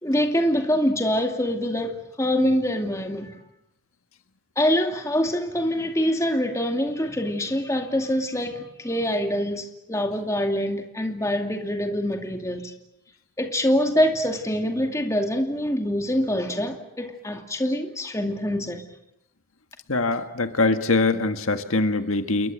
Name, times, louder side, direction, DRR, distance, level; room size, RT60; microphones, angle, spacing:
voice 1, 0.0-3.4 4.6-12.7 13.4-18.8, equal, 15° left, 2.4 m, -25 dB
voice 2, 19.9-22.5, left 3 dB, 85° left, 1.7 m, -23 dB
29.0 x 22.0 x 7.7 m
head